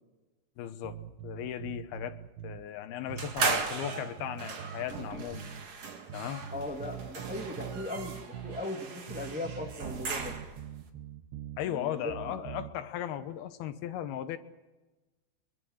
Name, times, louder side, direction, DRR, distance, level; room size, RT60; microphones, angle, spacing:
voice 1, 0.6-2.2 2.4-5.5 6.1-6.4 11.6-14.4, left 10 dB, 75° left, 10 dB, 2.8 m, -37 dB
sound 1, 0.8-2.6 3.1-5.7 6.1-8.7 9.1-11.6 12.1-12.7, right 10 dB, 85° right, 3.2 m, -44 dB
sound 2, 3.2-10.7, right 4 dB, 45° right, 2.6 m, -37 dB
voice 2, 6.5-10.3 11.6-12.4, left 2 dB, 5° right, 2 dB, 0.7 m, -38 dB
24.5 x 23.0 x 6.4 m, 1.2 s
omnidirectional pair, 4.8 m